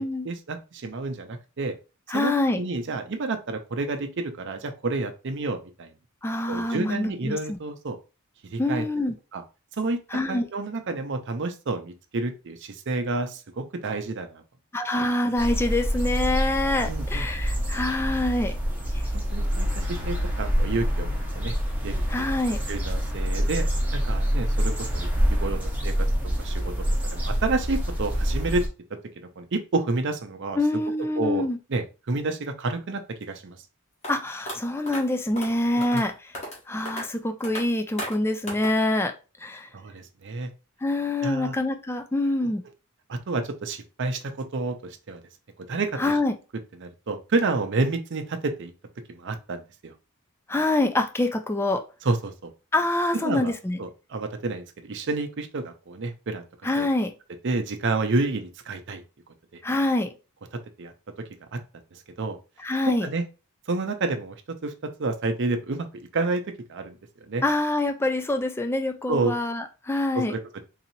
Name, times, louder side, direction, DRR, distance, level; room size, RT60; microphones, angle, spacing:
voice 1, 0.0-1.8 2.1-5.9 6.5-8.0 8.4-8.8 9.3-9.4 9.8-10.0 10.3-14.4 16.8-17.3 19.1-21.5 21.8-22.3 22.7-28.6 28.9-30.6 31.2-31.4 31.7-33.6 35.9-36.0 39.7-40.5 41.2-41.5 42.4-42.5 43.1-45.2 45.7-46.1 46.8-48.7 49.1-49.9 52.0-52.5 53.2-53.5 53.8-56.5 56.8-56.9 57.4-59.0 59.5-59.6 60.8-60.9 61.2-61.6 61.9-62.4 62.9-63.2 63.7-65.9 66.1-67.4 69.1-69.4 70.1-70.6, right 3 dB, 55° right, 7 dB, 0.6 m, -30 dB
voice 2, 2.1-2.6 6.2-7.6 8.6-9.1 10.1-10.5 14.7-18.5 18.9-19.0 22.1-22.6 30.6-31.6 34.1-36.3 36.7-39.1 39.4-39.7 40.8-42.6 46.0-46.4 50.5-51.8 52.7-53.8 56.6-57.1 59.6-60.1 62.6-63.1 67.4-70.3, left 2 dB, 10° left, 6 dB, 0.4 m, -25 dB
sound 1, 15.4-28.7, equal, 5° right, 1.0 m, -26 dB
sound 2, 34.0-34.1 34.5-34.6 34.9-35.0 35.4-35.5 35.8-36.0 36.3-36.6 36.9-37.0 37.4-37.6 38.0-38.1 38.5-38.7, equal, 30° left, 1.4 m, -34 dB
4.0 x 2.9 x 2.7 m, 0.31 s
head